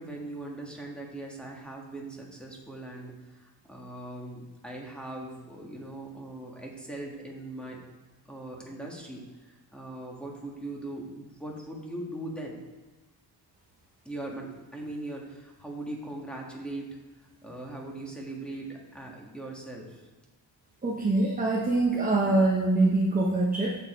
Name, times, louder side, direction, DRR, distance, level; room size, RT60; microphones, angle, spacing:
voice 1, 0.0-7.8 8.3-12.6 14.0-16.9 17.2-20.1, right 2 dB, ahead, -2 dB, 1.7 m, -40 dB
voice 2, 20.8-23.8, right 2 dB, 20° right, -4 dB, 1.0 m, -24 dB
7.4 x 7.3 x 4.4 m, 1.3 s
wide cardioid pair, 165°, 43 cm